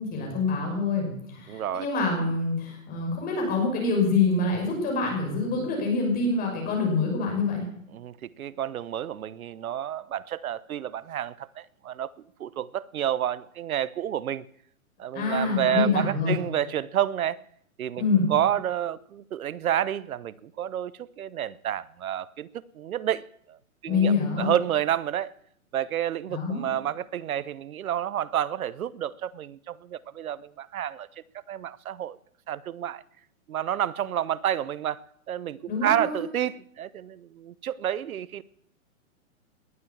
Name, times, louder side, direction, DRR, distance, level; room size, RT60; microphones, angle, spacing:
voice 1, 0.0-7.6 15.1-16.3 18.0-18.3 23.9-24.5 26.3-26.7 35.7-36.2, left 4 dB, 20° left, 6.1 m, -26 dB
voice 2, 1.5-1.9 7.9-12.1 12.4-14.5 15.0-17.4 17.8-22.5 22.7-23.6 23.8-25.3 25.7-31.1 31.5-32.2 32.5-33.0 33.5-38.4, right 10 dB, 80° right, 0.9 m, -29 dB
19.5 x 10.0 x 7.2 m
hypercardioid pair, 150°, 42 cm